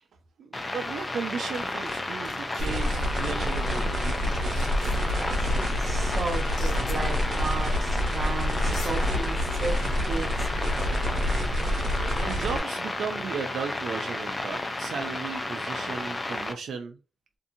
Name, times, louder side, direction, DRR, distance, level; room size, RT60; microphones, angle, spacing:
voice 1, 0.4-4.8 12.0-17.0, right 6 dB, 85° right, 6 dB, 0.4 m, -36 dB
sound 1, 0.5-16.5, left 2 dB, 20° left, 0.4 m, -32 dB
sound 2, 1.5-2.0 2.2-2.7 3.9-4.0 4.2-5.1 6.5-7.0 8.1-8.2 8.6-8.9, left 4 dB, 75° left, 0.9 m, -44 dB
sound 3, 2.6-12.6, equal, 65° right, 1.0 m, -28 dB
voice 2, 5.3-9.8 10.0-11.2, right 2 dB, 30° right, 1 dB, 0.9 m, -35 dB
2.6 x 2.5 x 2.6 m, 0.32 s
wide cardioid pair, 155°, 0 cm